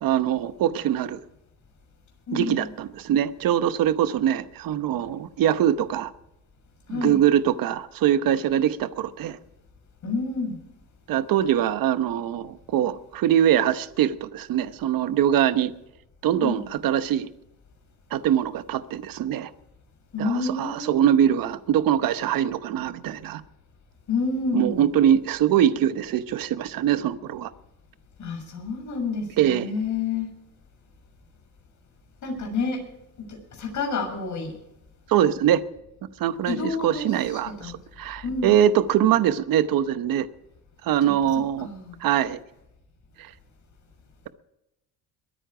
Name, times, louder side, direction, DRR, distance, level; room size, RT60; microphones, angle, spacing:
voice 1, 0.0-1.2 2.3-6.1 6.9-9.4 11.1-15.7 16.2-17.3 18.1-19.5 20.2-23.4 24.5-27.5 29.4-29.7 35.1-35.6 36.2-40.3 40.8-41.7 42.0-42.4 43.2-43.3, right 10 dB, 60° right, 1.0 m, -23 dB
voice 2, 2.3-2.7 6.9-7.2 10.0-10.6 16.4-16.7 20.1-21.4 24.1-24.8 28.2-30.3 32.2-32.8 33.5-34.5 36.4-37.7 38.2-38.6 41.0-41.1 41.6-41.9, left 4 dB, 50° left, 6.8 m, -29 dB
22.5 x 9.9 x 4.9 m
cardioid pair, 135°, 38 cm